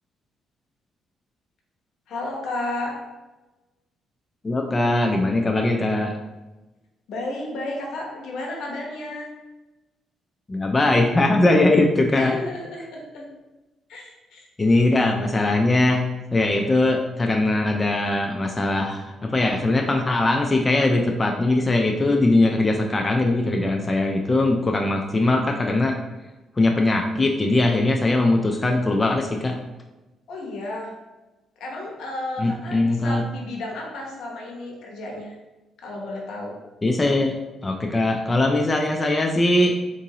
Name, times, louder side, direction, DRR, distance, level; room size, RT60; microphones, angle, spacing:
voice 1, 2.1-2.9 7.1-9.3 12.1-13.3 13.9-14.4 30.3-30.9 31.6-35.3 35.8-36.6, left 2 dB, 75° left, -1 dB, 0.9 m, -32 dB
voice 2, 4.4-6.1 10.5-12.4 14.6-16.1 16.3-26.0 26.6-29.6 32.4-33.2 36.8-37.3 37.6-39.7, left 2 dB, 25° left, 2 dB, 0.4 m, -20 dB
3.8 x 2.5 x 2.8 m, 1.1 s
cardioid pair, 90°, 0 cm